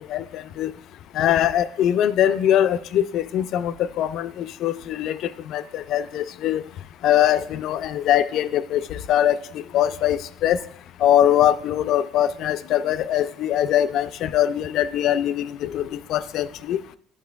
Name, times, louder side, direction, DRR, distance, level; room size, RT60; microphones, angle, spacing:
voice 1, 0.1-0.7 1.2-5.2 5.5-6.6 7.0-9.4 9.7-10.6 11.0-16.8, left 11 dB, 65° left, 14 dB, 0.3 m, -22 dB
10.5 x 5.1 x 2.3 m, 0.66 s
cardioid pair, 105°, 0 cm